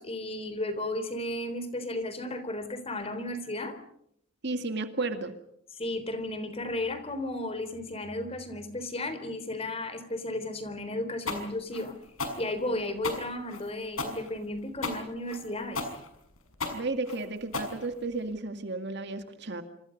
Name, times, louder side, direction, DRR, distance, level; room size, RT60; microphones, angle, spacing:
voice 1, 0.0-3.8 5.8-12.0 12.4-15.8, left 1 dB, 30° left, 10 dB, 3.7 m, -34 dB
voice 2, 4.4-5.3 16.7-19.6, right 3 dB, 55° right, 7 dB, 2.1 m, -33 dB
sound 1, 11.3-18.3, left 3 dB, 90° left, 6.2 m, -35 dB
27.5 x 27.0 x 5.3 m, 0.71 s
head